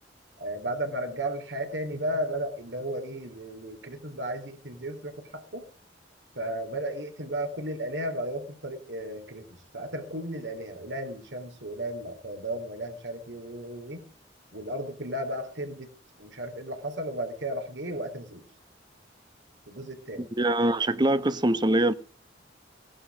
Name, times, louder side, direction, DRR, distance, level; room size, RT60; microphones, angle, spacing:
voice 1, 0.4-5.6 6.4-9.4 9.7-14.0 14.5-15.9 16.2-18.4 19.7-20.3, right 1 dB, 75° right, 3.7 m, -34 dB
voice 2, 20.2-21.9, right 1 dB, 25° right, 0.9 m, -24 dB
18.0 x 11.5 x 5.0 m
head